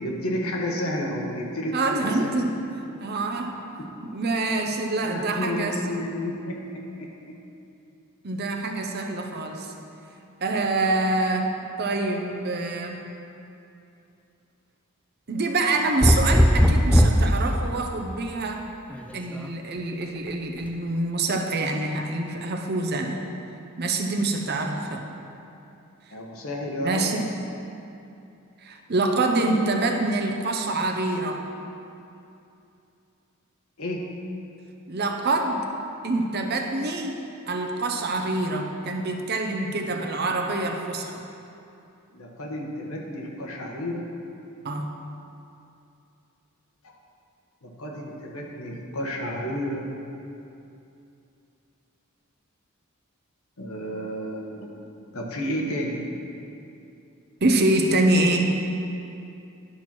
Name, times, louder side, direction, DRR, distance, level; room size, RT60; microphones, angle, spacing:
voice 1, 0.0-2.3 3.8-3.9 5.0-7.4 26.1-27.0 33.8-34.1 39.8-40.0 42.1-44.0 46.8-46.9 47.6-49.8 53.6-54.7 55.1-56.0, equal, 90° left, -1 dB, 1.3 m, -31 dB
voice 2, 1.7-2.5 3.0-3.6 4.1-6.0 8.2-9.7 10.4-13.0 15.3-18.7 19.1-23.2 23.8-25.1 26.8-27.3 28.6-31.4 34.9-35.7 36.0-37.2 37.5-41.2 44.6-44.9 57.4-58.5, right 2 dB, 50° right, 3 dB, 0.8 m, -26 dB
sound 1, 16.0-17.3 18.9-19.5, equal, 5° left, 0.4 m, -17 dB
11.0 x 4.4 x 6.0 m, 2.7 s
head